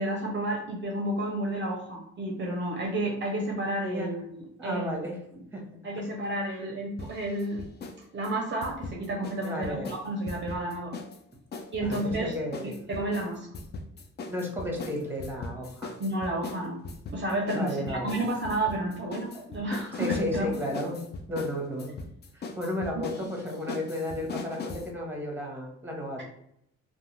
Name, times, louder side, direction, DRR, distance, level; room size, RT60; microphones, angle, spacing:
voice 1, 0.0-5.0 5.8-7.7 8.1-10.9 11.7-12.4 12.6-13.5 16.0-16.8 17.1-20.6, right 1 dB, 40° right, 0 dB, 0.5 m, -31 dB
voice 2, 3.8-4.2 4.6-5.1 5.5-5.8 6.5-6.6 9.4-9.9 11.8-12.9 14.3-15.9 17.5-18.1 19.3-19.4 19.9-21.0 21.3-21.9 22.3-26.2, left 1 dB, 5° right, 1 dB, 0.9 m, -33 dB
sound 1, 7.0-8.0 8.2-11.2 11.5-24.9, left 3 dB, 35° left, 0.4 m, -39 dB
2.4 x 2.1 x 3.0 m, 0.73 s
cardioid pair, 90°, 30 cm